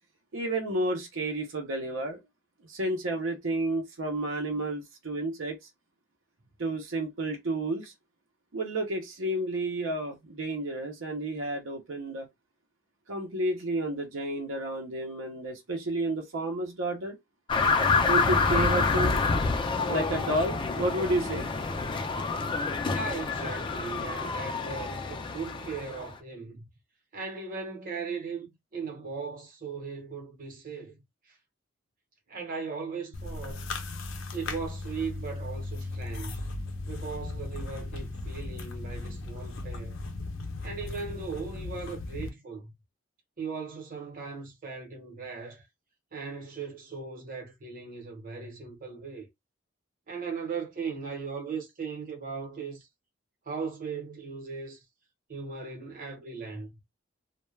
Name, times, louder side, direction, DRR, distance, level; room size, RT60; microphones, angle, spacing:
voice 1, 0.3-2.2 2.7-5.6 6.6-7.9 8.5-12.3 13.1-17.2 18.1-19.2 19.9-21.5, right 1 dB, 85° right, 0.7 m, -31 dB
sound 1, 17.5-26.1, left 4 dB, 25° left, 0.4 m, -27 dB
voice 2, 22.8-26.7 27.1-31.3 32.3-33.7 34.3-36.5 36.9-40.0 40.6-42.7 43.4-45.6 46.1-49.3 50.1-52.9 53.5-54.8 55.3-56.7, right 5 dB, 45° right, 0.9 m, -38 dB
sound 2, 33.1-42.3, left 2 dB, 80° left, 0.6 m, -37 dB
2.2 x 2.1 x 3.1 m
head